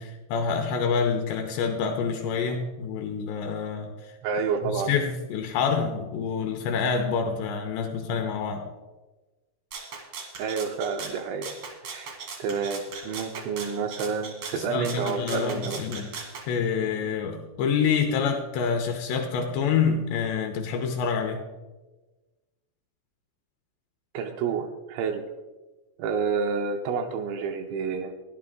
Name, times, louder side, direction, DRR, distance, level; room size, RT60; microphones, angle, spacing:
voice 1, 0.0-4.2 4.6-8.7 14.5-16.1 16.5-21.4, left 6 dB, 80° left, 4 dB, 2.7 m, -27 dB
voice 2, 4.2-5.0 10.4-11.6 11.8-15.8 24.1-25.3 26.0-28.1, right 5 dB, 85° right, 5 dB, 2.8 m, -29 dB
Rattle (instrument), 9.7-16.5, right 5 dB, 70° right, 1.6 m, -39 dB
13.5 x 11.5 x 3.7 m, 1.2 s
omnidirectional pair, 5.7 m